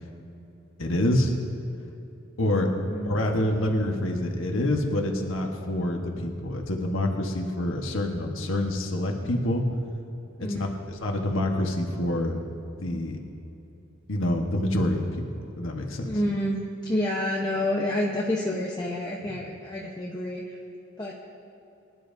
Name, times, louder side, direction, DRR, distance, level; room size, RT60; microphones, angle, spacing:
voice 1, 0.8-1.3 2.4-2.7 3.0-9.6 10.4-12.4 12.8-13.2 14.1-15.2 15.6-16.1, left 1 dB, 80° left, 1 dB, 1.3 m, -26 dB
voice 2, 10.4-10.7 16.0-16.6 16.8-20.6 21.0-21.1, left 1 dB, 20° left, -3 dB, 0.9 m, -28 dB
25.0 x 11.5 x 2.7 m, 2.9 s
head